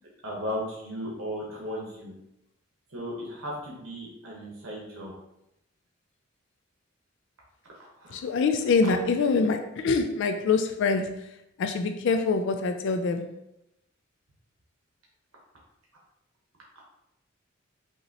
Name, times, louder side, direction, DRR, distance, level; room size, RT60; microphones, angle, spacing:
voice 1, 0.2-2.1 2.9-5.1 8.0-8.2, equal, 80° right, 1.1 m, -36 dB
voice 2, 8.1-11.3 11.6-13.3, left 4 dB, 65° left, 0.3 m, -25 dB
5.5 x 2.9 x 2.8 m
head